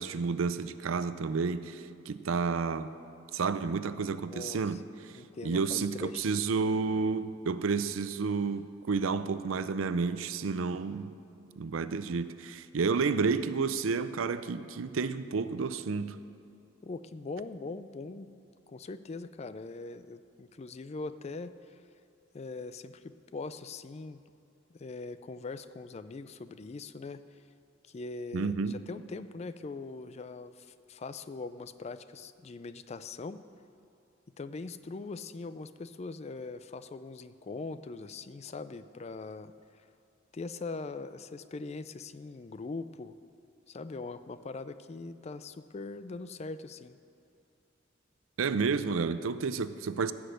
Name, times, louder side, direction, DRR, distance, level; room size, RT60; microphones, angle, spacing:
voice 1, 0.0-2.9 3.3-4.8 5.4-11.1 11.6-16.2 28.3-28.8 48.4-50.1, right 4 dB, 85° right, 13 dB, 0.5 m, -30 dB
voice 2, 4.3-4.8 5.1-6.3 16.8-18.3 18.7-21.8 22.3-24.2 24.7-27.4 27.8-33.4 34.4-39.9 40.3-43.2 43.7-47.0, left 3 dB, 30° left, 13 dB, 0.4 m, -41 dB
15.5 x 6.3 x 7.8 m, 2.6 s
head